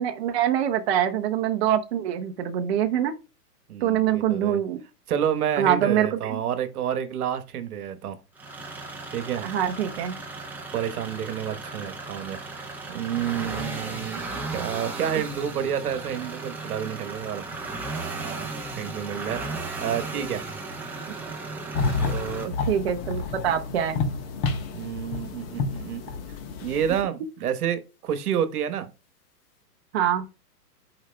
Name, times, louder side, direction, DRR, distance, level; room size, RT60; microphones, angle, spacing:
voice 1, 0.0-3.1 3.8-4.8 5.6-6.4 9.4-10.2 22.7-24.0 29.9-30.2, right 10 dB, 40° right, 0.7 m, -24 dB
voice 2, 3.7-4.6 5.1-8.2 9.1-9.5 10.7-12.6 12.9-17.4 18.1-18.5 18.8-20.4 22.0-22.5 24.7-26.0 26.6-28.9, right 9 dB, 65° right, 1.3 m, -29 dB
sound 1, 8.4-22.4, right 3 dB, 5° right, 0.8 m, -35 dB
sound 2, 21.7-27.0, left 4 dB, 35° left, 1.3 m, -30 dB
11.0 x 4.8 x 2.2 m
hypercardioid pair, 140°, 48 cm